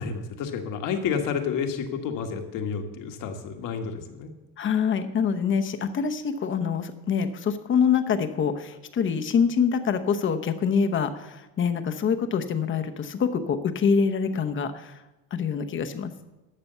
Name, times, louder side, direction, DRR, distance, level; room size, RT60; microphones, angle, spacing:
voice 1, 0.0-4.3, left 6 dB, 60° left, 5 dB, 1.6 m, -30 dB
voice 2, 4.6-15.0 15.3-16.1, left 6 dB, 35° left, 7 dB, 0.9 m, -25 dB
12.0 x 6.8 x 6.7 m, 1.0 s
cardioid pair, 130°, 36 cm